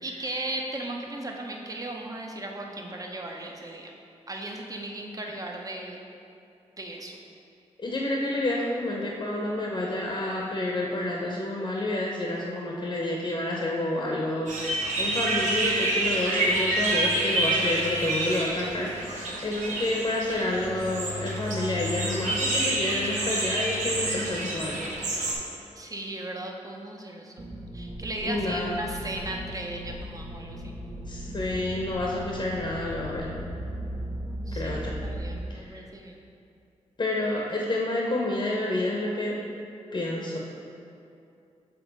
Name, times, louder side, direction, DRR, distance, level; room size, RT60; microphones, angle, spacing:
voice 1, 0.0-3.9 4.3-6.0 6.8-7.2 25.8-27.4 27.7-30.7 34.5-36.2, right 1 dB, 30° right, 1 dB, 0.8 m, -36 dB
voice 2, 7.8-24.9 28.2-28.8 31.0-33.3 34.5-35.0 35.5-35.8 37.0-39.4 39.9-40.4, left 1 dB, 40° left, -2 dB, 0.8 m, -29 dB
sound 1, 14.5-25.4, right 1 dB, 90° right, 1.0 m, -28 dB
sound 2, 27.4-35.4, equal, 60° right, 1.1 m, -37 dB
6.9 x 3.5 x 4.0 m, 2.6 s
cardioid pair, 60°, 12 cm